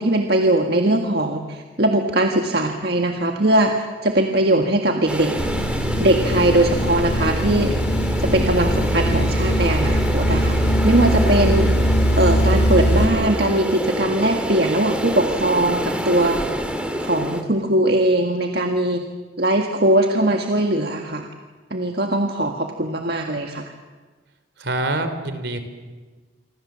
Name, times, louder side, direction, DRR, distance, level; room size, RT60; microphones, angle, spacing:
voice 1, 0.0-5.3 6.0-7.7 8.2-11.7 12.2-16.4 17.0-19.0 19.4-21.3 21.7-23.6, right 1 dB, 60° right, 3 dB, 1.8 m, -20 dB
sound 1, 5.1-17.4, equal, 5° right, 2.3 m, -27 dB
sound 2, 5.4-13.1, equal, 70° left, 2.4 m, -21 dB
voice 2, 24.6-25.6, right 2 dB, 75° right, 9 dB, 3.4 m, -25 dB
27.5 x 25.0 x 7.6 m, 1.3 s
head